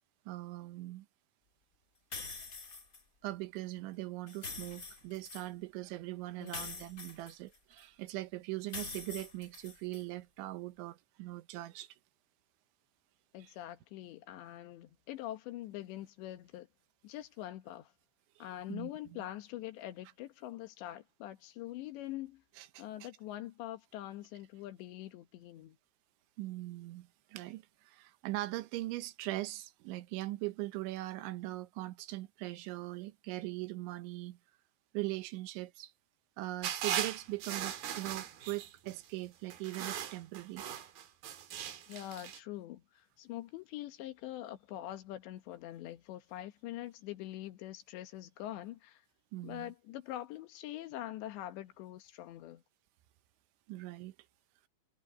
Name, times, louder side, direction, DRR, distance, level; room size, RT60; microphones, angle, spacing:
voice 1, 0.3-1.1 3.2-11.9 13.4-13.5 18.4-19.2 22.6-23.1 26.4-34.4 34.9-35.9 36.4-40.6 49.3-49.7 53.7-54.1, right 18 dB, 85° right, 3.4 m, -41 dB
sound 1, 2.1-3.0 4.3-5.5 6.5-7.8 8.7-10.0, left 4 dB, 25° left, 2.2 m, -44 dB
voice 2, 6.4-6.8 13.3-16.7 17.0-17.9 18.4-22.4 22.8-25.8 41.9-42.8 43.2-49.0 49.4-52.6, left 14 dB, 75° left, 3.5 m, -44 dB
sound 2, 36.6-39.0 39.5-42.4, right 10 dB, 60° right, 3.4 m, -39 dB
omnidirectional pair, 5.3 m